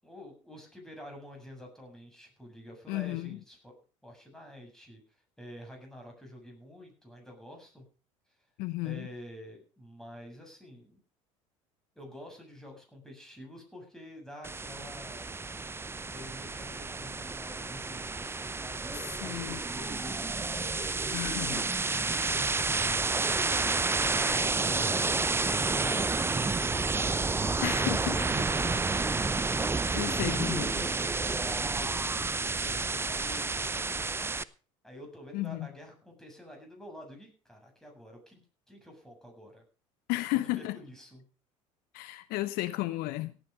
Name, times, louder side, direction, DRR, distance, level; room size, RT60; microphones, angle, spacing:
voice 1, 0.0-3.7 4.0-5.0 5.4-7.8 8.8-11.0 12.0-15.3 16.1-21.4 22.2-29.2 29.6-30.3 31.2-32.3 32.6-34.4 34.8-39.6 40.3-41.2, left 1 dB, 5° left, 7.5 m, -48 dB
voice 2, 2.9-3.4 8.6-9.1 19.0-19.6 21.1-21.7 27.6-28.2 29.5-30.9 35.3-35.7 40.1-40.8 41.9-43.4, left 18 dB, 65° left, 0.7 m, -33 dB
sound 1, 14.4-34.4, right 3 dB, 15° right, 0.7 m, -30 dB
17.0 x 9.2 x 5.2 m
hypercardioid pair, 75°, 17 cm